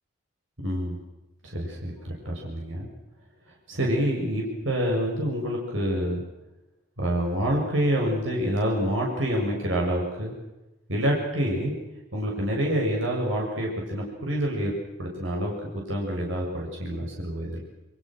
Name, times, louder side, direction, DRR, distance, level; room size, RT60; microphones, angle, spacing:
voice 1, 0.6-1.0 1.4-2.9 3.7-6.2 7.0-10.3 10.9-11.7 12.1-14.7 15.0-17.6, equal, 80° right, -1 dB, 7.5 m, -27 dB
29.0 x 25.5 x 6.4 m, 0.99 s
head